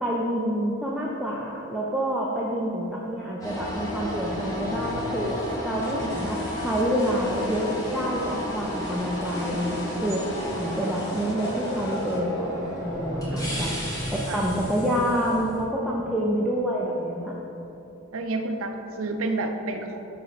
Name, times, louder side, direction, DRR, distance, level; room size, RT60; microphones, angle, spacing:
voice 1, 0.0-5.4 5.6-10.2 10.6-13.7 14.3-17.4, equal, ahead, -5 dB, 0.4 m, -27 dB
sound 1, 3.4-15.6, equal, 15° left, 1.1 m, -32 dB
sound 2, 4.7-12.2, left 1 dB, 50° left, 1.0 m, -41 dB
voice 2, 18.1-20.0, right 2 dB, 70° right, 5 dB, 0.6 m, -30 dB
5.0 x 4.6 x 5.7 m, 2.9 s
head